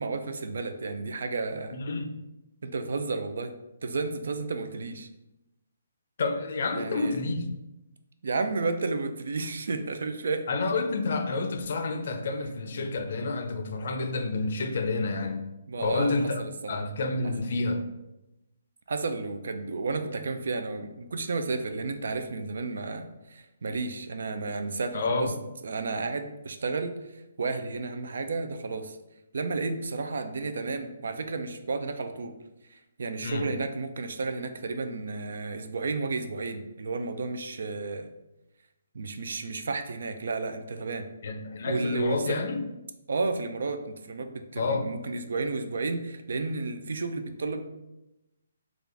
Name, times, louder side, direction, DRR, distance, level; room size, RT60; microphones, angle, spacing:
voice 1, 0.0-1.8 2.6-3.5 3.8-5.1 6.7-7.2 8.2-10.7 15.7-16.8 18.9-25.3 25.6-29.0 29.3-32.3 32.7-38.1 38.9-41.1 41.7-42.2 43.1-47.6, right 3 dB, 70° right, 8 dB, 0.4 m, -32 dB
voice 2, 1.7-2.1 6.2-7.5 10.5-15.5 15.8-16.4 16.7-17.9 24.9-25.3 33.2-33.5 41.2-42.6 44.6-44.9, left 3 dB, 55° left, 6 dB, 0.4 m, -29 dB
3.7 x 2.4 x 3.3 m, 0.96 s
hypercardioid pair, 165°, 0 cm